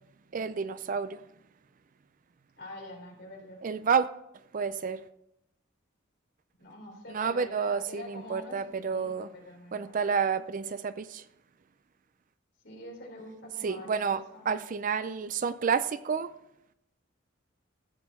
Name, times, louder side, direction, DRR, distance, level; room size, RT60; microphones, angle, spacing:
voice 1, 0.3-1.2 3.6-4.1 4.5-5.0 7.1-9.3 9.7-11.2 13.6-16.3, right 6 dB, 40° right, 0.4 m, -30 dB
voice 2, 2.6-3.6 6.6-9.8 12.6-14.6, left 1 dB, 60° left, 3.7 m, -46 dB
14.5 x 7.6 x 4.1 m
head